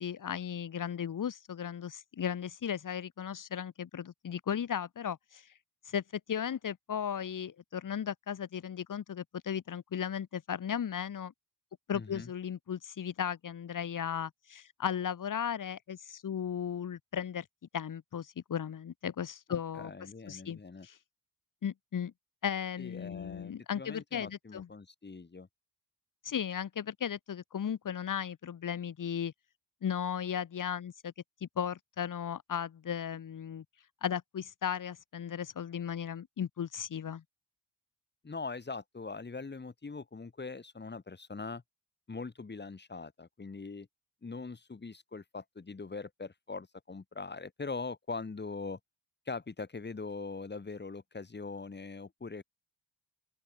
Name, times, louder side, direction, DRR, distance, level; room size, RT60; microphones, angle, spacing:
voice 1, 0.0-5.5 5.8-11.3 11.9-17.5 17.7-19.9 20.3-21.0 21.6-22.1 22.4-24.7 26.2-29.3 29.8-31.1 31.4-33.6 34.0-37.2, left 8 dB, 45° left, 1.8 m, -36 dB
voice 2, 11.9-12.3 19.5-20.9 22.8-25.5 38.2-41.6 42.1-43.9 44.2-48.8 49.2-52.4, left 4 dB, 25° left, 5.1 m, -42 dB
open air
wide cardioid pair, 145°, 43 cm